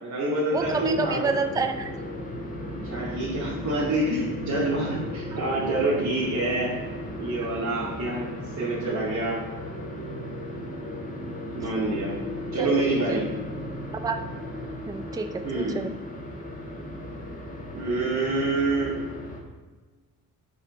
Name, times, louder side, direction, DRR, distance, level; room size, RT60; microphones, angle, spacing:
voice 1, 0.0-1.3 2.7-6.7 7.2-8.3 8.6-9.4 11.5-12.1 12.5-13.3 15.4-15.8 17.7-18.9, right 2 dB, 50° right, -8 dB, 2.4 m, -27 dB
sound 1, 0.5-19.4, left 1 dB, 25° left, 1.6 m, -36 dB
voice 2, 0.5-1.9 5.3-5.4 12.6-13.2 13.9-14.2 14.9-15.9, right 4 dB, 10° right, 7 dB, 0.4 m, -29 dB
8.8 x 5.6 x 5.4 m, 1.3 s
cardioid pair, 145°, 35 cm